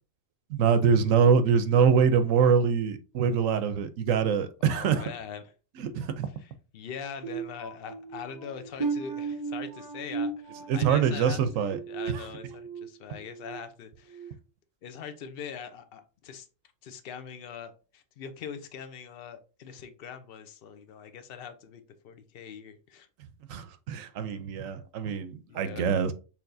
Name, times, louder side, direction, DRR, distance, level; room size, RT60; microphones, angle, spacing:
voice 1, 0.5-5.0 5.8-6.3 10.7-11.8 12.1-12.3 23.5-26.1, right 6 dB, 80° right, 1.0 m, -24 dB
voice 2, 4.6-5.4 6.4-11.4 11.9-14.3 14.8-16.5 16.8-23.1 25.5-25.9, left 7 dB, 55° left, 0.8 m, -42 dB
sound 1, 7.2-12.9 13.3-13.6 14.1-14.3, right 5 dB, 30° right, 0.4 m, -36 dB
5.9 x 3.4 x 2.6 m
omnidirectional pair, 1.3 m